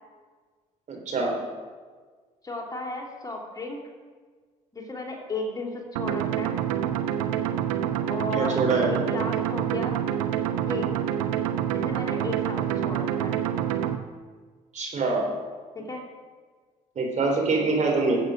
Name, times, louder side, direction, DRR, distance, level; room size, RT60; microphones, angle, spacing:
voice 1, 0.9-1.3 8.3-8.9 14.7-15.3 17.0-18.2, right 3 dB, 40° right, 0 dB, 3.5 m, -24 dB
voice 2, 2.4-3.8 4.7-6.6 8.1-10.0 10.7-10.9 11.7-13.4 15.9-16.0, left 2 dB, 20° left, 0 dB, 2.9 m, -34 dB
sound 1, 6.0-14.0, right 10 dB, 75° right, 0.8 m, -27 dB
13.5 x 7.9 x 6.3 m, 1.5 s
hypercardioid pair, 55°, 18 cm